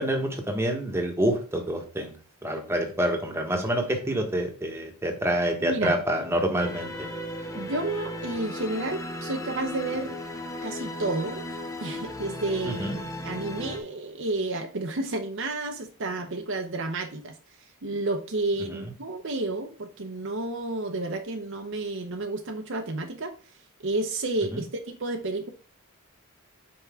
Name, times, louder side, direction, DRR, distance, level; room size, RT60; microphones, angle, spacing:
voice 1, 0.0-2.2 2.4-7.1 12.7-13.0 18.7-18.8 24.5-24.6, right 1 dB, 10° right, 3 dB, 1.3 m, -27 dB
voice 2, 5.6-6.0 7.5-10.2 10.6-11.5 11.8-17.4 17.8-23.3 23.8-25.5, right 2 dB, 60° right, 4 dB, 0.8 m, -31 dB
sound 1, 6.6-13.8, left 1 dB, 15° left, 0.7 m, -36 dB
5.7 x 5.3 x 3.6 m, 0.38 s
head